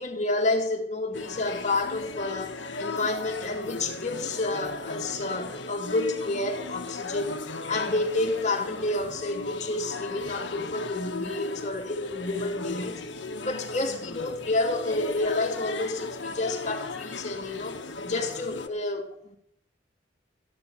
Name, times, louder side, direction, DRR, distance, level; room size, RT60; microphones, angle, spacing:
voice 1, 0.0-7.4 7.7-13.0 13.4-19.4, left 2 dB, 40° left, 2.6 m, -29 dB
sound 1, 1.1-18.7, left 3 dB, 70° left, 1.6 m, -37 dB
15.0 x 10.0 x 8.3 m
head